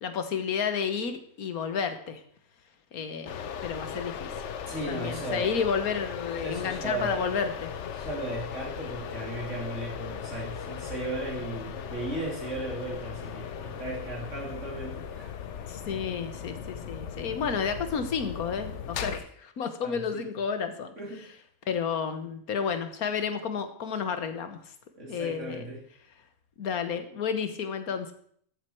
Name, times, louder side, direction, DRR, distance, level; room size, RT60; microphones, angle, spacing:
voice 1, 0.0-2.2 2.9-4.4 4.9-7.7 15.7-20.9 21.7-24.6 25.1-25.6 26.6-28.1, left 6 dB, 90° left, 9 dB, 1.6 m, -31 dB
sound 1, 3.3-19.2, left 7 dB, 60° left, 1.0 m, -38 dB
voice 2, 4.7-5.5 6.4-7.2 7.9-15.4 19.8-20.3 21.0-21.2 25.0-25.8, right 2 dB, 55° right, -2 dB, 3.5 m, -36 dB
14.0 x 7.8 x 4.5 m, 0.62 s
omnidirectional pair, 1.5 m